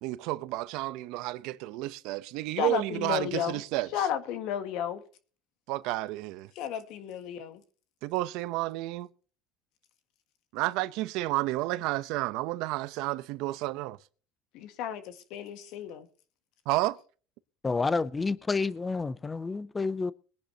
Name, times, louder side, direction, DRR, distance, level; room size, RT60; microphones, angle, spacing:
voice 1, 0.0-3.9 5.7-6.5 8.0-9.1 10.5-14.0 16.7-17.0, right 18 dB, 75° right, 0.7 m, -31 dB
voice 2, 2.6-3.6 3.9-5.0 6.5-7.6 14.5-15.0 15.3-16.1, left 9 dB, 70° left, 1.7 m, -33 dB
voice 3, 17.6-20.1, left 4 dB, 20° left, 0.5 m, -29 dB
22.0 x 10.5 x 2.9 m
cardioid pair, 120°, 0 cm